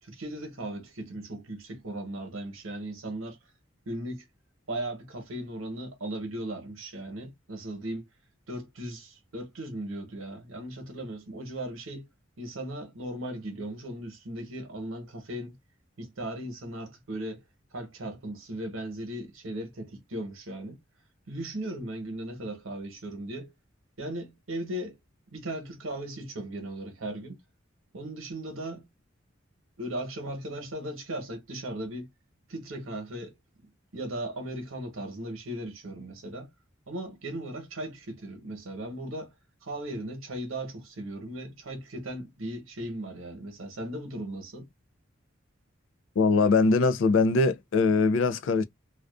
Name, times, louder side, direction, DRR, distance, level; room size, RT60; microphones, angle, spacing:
voice 1, 0.0-3.4 3.9-4.2 4.7-8.0 8.5-12.1 12.4-15.6 16.0-17.4 17.7-20.8 21.3-23.5 24.0-25.0 25.3-27.4 27.9-28.8 29.8-32.1 32.5-33.3 33.9-36.5 36.9-39.3 39.6-44.7, right 1 dB, 90° right, 1.0 m, -37 dB
voice 2, 46.2-48.6, left 3 dB, 65° left, 0.4 m, -22 dB
2.4 x 2.3 x 2.3 m
head